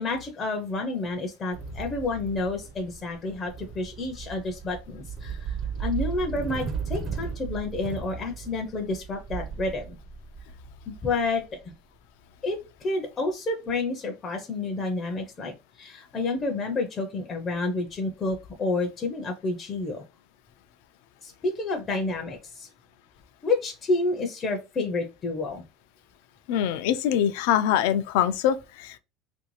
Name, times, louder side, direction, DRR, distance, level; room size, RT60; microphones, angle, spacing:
voice 1, 0.0-10.0 10.9-11.4 12.4-20.0 21.2-22.7 23.4-25.6, left 3 dB, 20° left, 0.5 m, -29 dB
sound 1, 1.5-11.7, right 6 dB, 35° right, 0.6 m, -36 dB
voice 2, 26.5-29.0, left 10 dB, 75° left, 0.4 m, -24 dB
3.1 x 2.6 x 3.0 m
cardioid pair, 165°, 0 cm